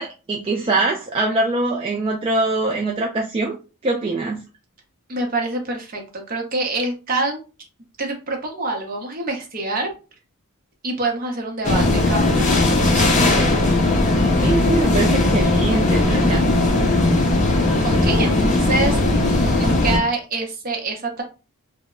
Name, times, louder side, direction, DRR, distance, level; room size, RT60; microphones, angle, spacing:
voice 1, 0.0-3.6 3.8-4.4 14.4-16.4, right 2 dB, 25° right, 0 dB, 0.3 m, -23 dB
voice 2, 5.1-7.4 8.0-9.9 10.8-13.7 17.8-19.3 19.6-21.2, right 2 dB, 40° right, 2 dB, 0.7 m, -26 dB
sound 1, 11.6-20.0, left 2 dB, 35° left, 0.5 m, -18 dB
2.1 x 2.0 x 3.6 m, 0.31 s
head